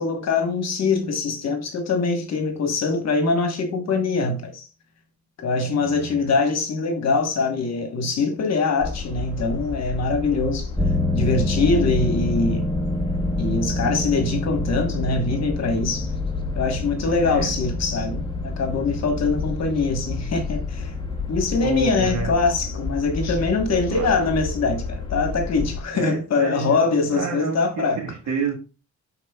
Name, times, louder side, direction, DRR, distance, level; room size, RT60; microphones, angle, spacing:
voice 1, 0.0-4.7 5.4-10.7 11.1-12.6 13.4-16.1 16.5-20.9 21.3-28.0, left 4 dB, 60° left, 1.3 m, -23 dB
voice 2, 5.8-6.2 17.1-17.5 21.6-22.3 23.9-24.3 25.9-28.5, right 5 dB, 70° right, 1.6 m, -30 dB
sound 1, 8.8-25.8, left 4 dB, 15° left, 1.7 m, -31 dB
sound 2, 10.8-21.5, left 1 dB, 5° right, 0.8 m, -28 dB
11.0 x 4.2 x 2.3 m
cardioid pair, 90°, 30 cm